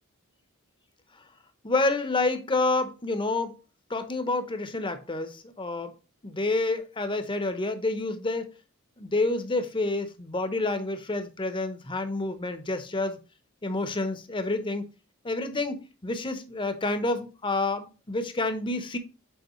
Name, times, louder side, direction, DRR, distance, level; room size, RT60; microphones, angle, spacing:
voice 1, 1.6-3.6 3.9-5.9 6.2-8.5 9.0-13.2 13.6-14.9 15.2-19.0, left 2 dB, 25° left, 0.8 m, -28 dB
7.9 x 4.8 x 3.0 m
head